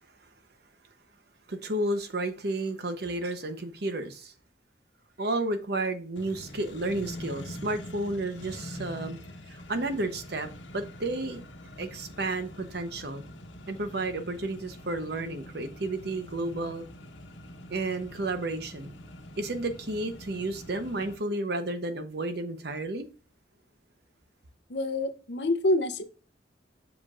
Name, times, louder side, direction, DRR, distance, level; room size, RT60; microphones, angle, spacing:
voice 1, 1.5-4.3 5.2-9.2 9.5-11.4 11.8-13.2 13.7-16.8 17.7-18.9 19.4-23.1, right 2 dB, 60° right, 0.9 m, -32 dB
Accelerating revving vroom, 6.2-21.2, left 1 dB, 80° left, 1.1 m, -44 dB
voice 2, 24.7-26.0, left 1 dB, 65° left, 0.7 m, -27 dB
7.6 x 6.0 x 2.5 m
head